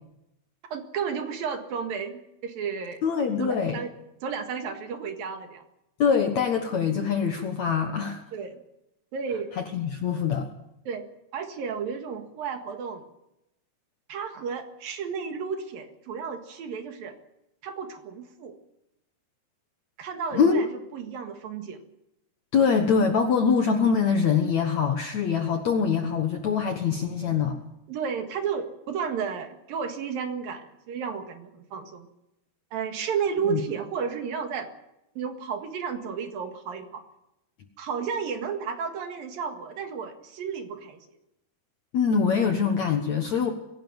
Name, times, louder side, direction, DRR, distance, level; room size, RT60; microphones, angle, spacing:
voice 1, 0.7-3.0 3.4-3.9 4.2-5.6 8.3-8.6 9.1-9.5 10.9-11.1 11.3-13.0 14.1-17.2 17.6-18.6 20.0-21.8 27.9-32.1 32.7-34.7 35.2-37.0 37.8-41.1, right 6 dB, 60° right, 6 dB, 3.3 m, -32 dB
voice 2, 3.0-3.8 6.0-8.2 9.6-10.5 20.3-20.6 22.5-27.6 33.4-33.6 41.9-43.5, left 6 dB, 60° left, 5 dB, 1.9 m, -24 dB
23.5 x 17.0 x 8.0 m, 0.87 s
omnidirectional pair, 4.9 m